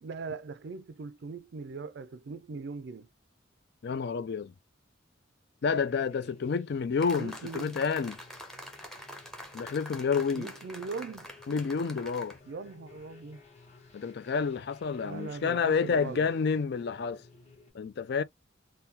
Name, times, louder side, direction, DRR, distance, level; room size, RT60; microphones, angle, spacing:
voice 1, 0.0-3.1 7.2-7.8 10.4-11.3 12.5-13.4 15.0-16.3, right 4 dB, 60° right, 0.4 m, -40 dB
voice 2, 3.8-4.5 5.6-8.2 9.5-10.5 11.5-12.4 13.9-17.2 17.7-18.2, left 5 dB, 55° left, 0.4 m, -29 dB
sound 1, 5.6-17.7, left 3 dB, 35° left, 1.4 m, -56 dB
sound 2, 7.0-12.4, equal, ahead, 0.7 m, -46 dB
3.6 x 2.2 x 2.7 m
head